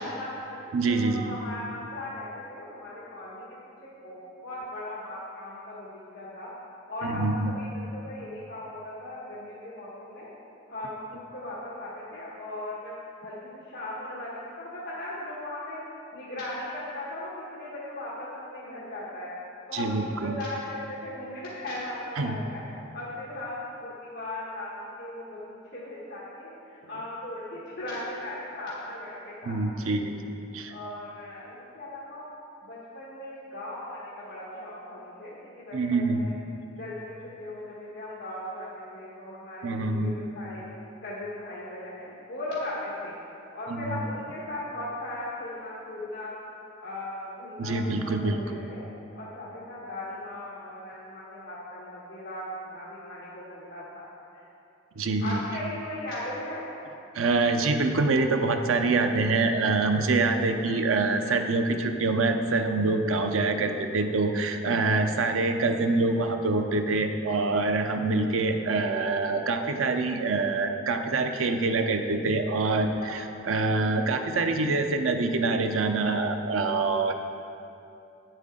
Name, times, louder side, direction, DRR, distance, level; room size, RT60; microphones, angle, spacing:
voice 1, 0.0-3.4 3.8-6.5 6.9-10.3 10.7-13.4 13.6-15.8 16.1-19.3 19.7-22.6 22.9-29.7 30.5-32.3 32.6-36.3 36.7-40.6 41.0-43.2 43.5-46.4 46.8-48.8 49.2-54.1 54.3-54.4 55.2-56.6 63.1-63.2 72.7-73.1 77.1-77.2, left 1 dB, 55° left, -9 dB, 1.4 m, -38 dB
voice 2, 0.7-1.4 7.0-7.5 19.7-20.4 22.2-22.4 29.5-30.1 30.5-30.7 35.7-36.3 39.6-40.1 43.7-44.0 47.6-48.6 55.0-55.4 57.1-77.1, right 3 dB, 85° right, 6 dB, 0.6 m, -25 dB
8.6 x 7.7 x 3.8 m, 2.7 s
head